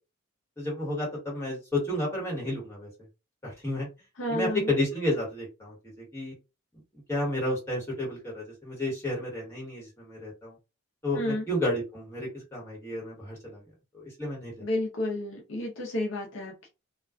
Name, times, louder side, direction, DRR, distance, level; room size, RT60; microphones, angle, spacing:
voice 1, 0.6-2.9 3.4-3.9 4.3-6.3 7.1-10.5 11.0-13.6 13.9-14.6, left 1 dB, 10° left, -4 dB, 1.3 m, -31 dB
voice 2, 4.2-4.7 11.2-11.5 14.6-16.7, left 1 dB, 60° left, 0 dB, 0.6 m, -31 dB
2.3 x 2.3 x 2.3 m, 0.27 s
head